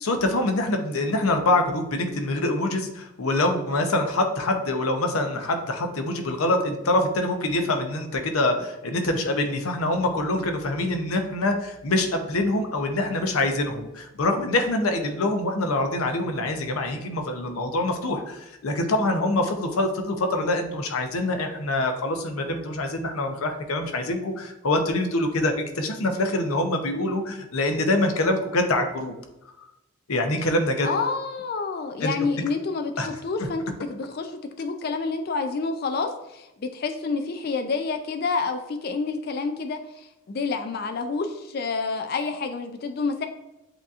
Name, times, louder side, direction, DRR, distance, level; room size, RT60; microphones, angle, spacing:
voice 1, 0.0-29.1 30.1-30.9 32.0-32.1 33.0-33.1 33.4-33.5, left 2 dB, 90° left, 5 dB, 0.7 m, -25 dB
voice 2, 30.8-33.6 33.9-34.3 34.6-43.3, left 4 dB, 45° left, 7 dB, 0.3 m, -28 dB
7.8 x 2.7 x 2.4 m, 0.93 s
head